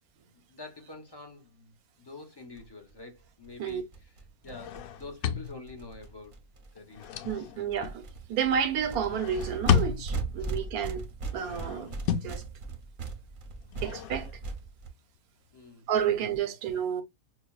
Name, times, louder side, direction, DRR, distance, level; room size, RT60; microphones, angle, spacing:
voice 1, 0.3-4.1 4.4-6.4 6.7-7.5 10.4-10.5 15.5-16.2, left 3 dB, 20° left, 0.7 m, -47 dB
sound 1, 2.6-2.7 2.9-3.0 3.2-3.3 3.4-6.7 7.0-7.4 7.7-14.9, right 4 dB, 40° right, 0.8 m, -38 dB
sound 2, 4.4-5.9 6.6-8.0 9.0-10.4 11.2-12.4 13.6-14.6, left 9 dB, 80° left, 1.0 m, -32 dB
voice 2, 7.2-8.0 8.3-11.1 11.3-11.9 12.2-12.4 13.8-14.3 15.9-17.0, right 8 dB, 85° right, 1.2 m, -30 dB
6.0 x 2.2 x 2.3 m
omnidirectional pair, 1.5 m